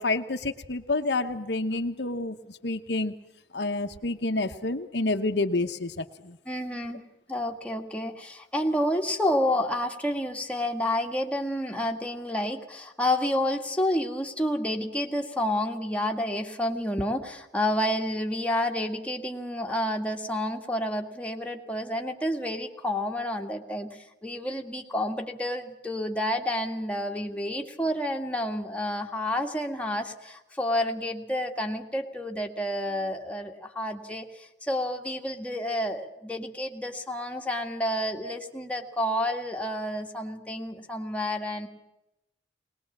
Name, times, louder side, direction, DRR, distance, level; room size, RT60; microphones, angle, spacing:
voice 1, 0.0-2.4 2.6-3.1 3.5-6.4, left 2 dB, 65° left, 1.1 m, -28 dB
voice 2, 6.5-7.0 7.3-41.7, left 1 dB, 5° left, 1.9 m, -29 dB
21.5 x 20.0 x 7.3 m
head